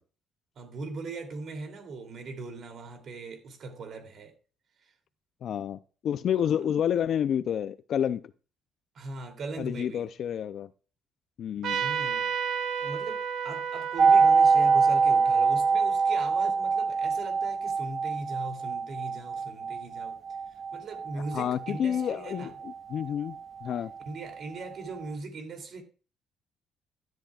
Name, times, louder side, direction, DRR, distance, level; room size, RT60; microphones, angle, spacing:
voice 1, 0.6-4.3 4.8-4.9 8.9-10.0 11.8-12.3 12.8-20.2 20.7-22.5 24.1-25.8, right 3 dB, 55° right, 3.0 m, -40 dB
voice 2, 5.4-8.2 9.6-10.7 11.4-11.8 21.3-23.9, left 9 dB, 60° left, 0.5 m, -29 dB
Trumpet, 11.6-16.7, right 7 dB, 70° right, 1.9 m, -33 dB
sound 1, 14.0-23.7 24.0-24.1, right 5 dB, 30° right, 0.4 m, -25 dB
13.0 x 11.5 x 2.4 m
cardioid pair, 130°, 0 cm